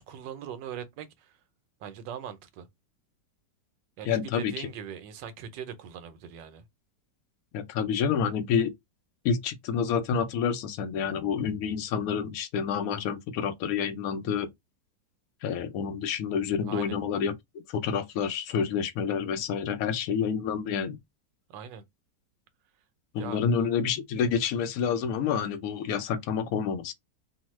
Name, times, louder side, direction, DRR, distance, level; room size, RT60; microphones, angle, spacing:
voice 1, 0.0-1.4 1.8-2.7 4.0-6.6 16.6-17.0 21.5-21.8 23.2-23.4, right 8 dB, 80° right, 1.3 m, -41 dB
voice 2, 4.1-4.5 7.5-8.7 9.2-14.5 15.4-17.4 17.7-21.0 23.1-26.9, left 7 dB, 70° left, 0.9 m, -28 dB
3.0 x 2.1 x 3.0 m
omnidirectional pair, 1.9 m